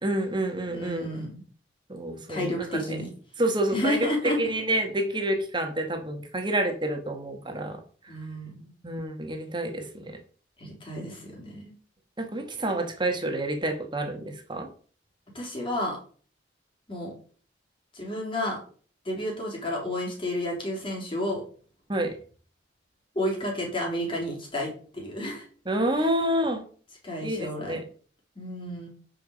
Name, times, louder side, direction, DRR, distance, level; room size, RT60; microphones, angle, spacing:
voice 1, 0.0-1.1 1.9-3.0 3.4-8.1 8.8-10.2 12.2-14.7 21.9-22.2 25.7-26.6 27.2-27.8, right 1 dB, 25° right, 4 dB, 1.7 m, -28 dB
voice 2, 0.7-1.4 2.3-3.1 3.7-4.4 8.1-8.7 10.6-11.7 15.3-16.0 16.9-17.1 17.9-18.6 19.1-21.4 23.2-25.4 25.9-26.2 27.0-27.8 28.4-28.9, left 1 dB, 30° left, -1 dB, 3.6 m, -31 dB
9.0 x 5.8 x 5.4 m, 0.42 s
head